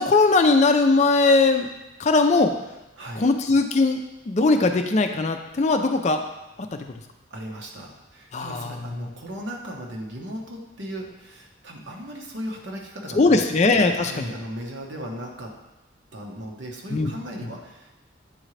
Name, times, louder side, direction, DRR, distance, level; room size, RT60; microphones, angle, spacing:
voice 1, 0.0-1.7 2.0-2.5 3.2-6.2 6.7-6.8 8.3-9.1 13.1-14.3 16.9-17.1, left 3 dB, 35° left, 6 dB, 0.4 m, -20 dB
voice 2, 7.3-13.6 13.9-15.5 16.1-17.9, equal, 75° right, -1 dB, 1.1 m, -36 dB
8.8 x 3.8 x 3.2 m, 1.0 s
head